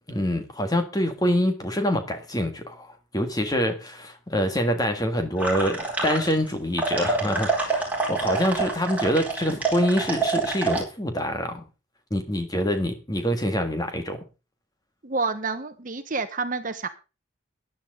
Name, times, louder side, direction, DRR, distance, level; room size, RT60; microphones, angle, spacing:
voice 1, 0.1-11.6 12.1-14.2, equal, 20° left, 1.8 m, -25 dB
sound 1, 5.4-6.5 6.8-10.8, right 3 dB, 10° right, 4.4 m, -26 dB
voice 2, 15.0-16.9, right 4 dB, 40° right, 1.1 m, -28 dB
14.5 x 10.5 x 3.8 m
head